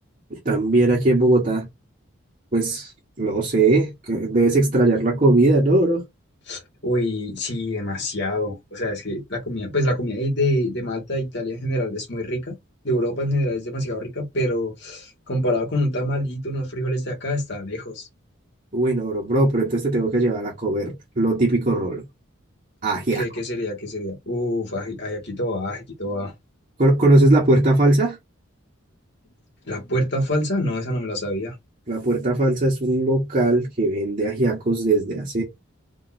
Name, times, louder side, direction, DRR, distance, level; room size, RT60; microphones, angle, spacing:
voice 1, 0.3-1.7 2.5-2.9 3.2-6.0 18.7-22.0 22.8-23.2 26.8-28.2 31.9-35.4, right 2 dB, 40° right, 1.4 m, -19 dB
voice 2, 6.5-12.6 12.8-18.1 23.1-26.3 29.7-31.5, left 1 dB, 55° left, 2.0 m, -26 dB
3.7 x 2.8 x 4.3 m
head